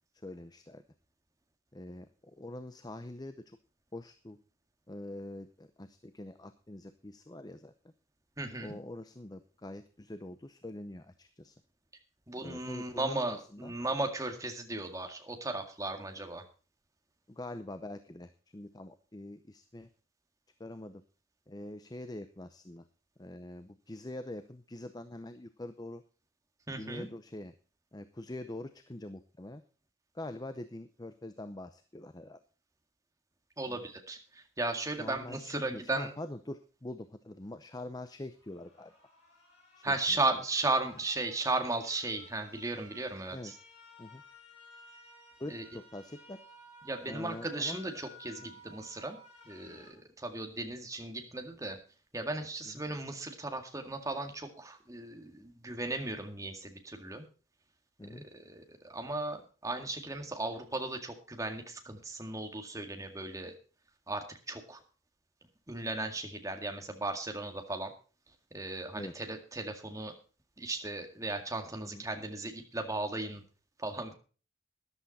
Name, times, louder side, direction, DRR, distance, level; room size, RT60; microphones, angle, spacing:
voice 1, 0.2-0.8 1.7-3.6 3.9-4.4 4.9-7.7 8.6-11.5 12.4-13.7 17.3-19.9 20.6-21.0 21.5-22.8 23.2-26.0 26.7-27.5 27.9-29.6 30.1-32.4 33.7-33.9 34.8-38.9 39.8-40.2 43.3-43.5 44.0-44.2 45.4-46.4 47.0-47.8 48.4-48.5 52.7-52.8 58.0-58.3 68.9-69.1 71.8-72.0, left 1 dB, 20° left, 10 dB, 0.7 m, -44 dB
voice 2, 8.4-8.8 12.3-16.4 26.7-27.1 33.6-36.1 39.8-43.6 45.5-45.6 46.8-49.2 49.5-51.8 52.1-57.2 58.1-63.5 64.1-64.8 65.7-67.9 68.5-70.1 70.6-73.4 73.8-74.1, right 2 dB, 15° right, 4 dB, 2.0 m, -36 dB
sound 1, 38.3-49.9, left 2 dB, 35° left, 5.7 m, -56 dB
14.0 x 11.0 x 4.2 m, 0.37 s
head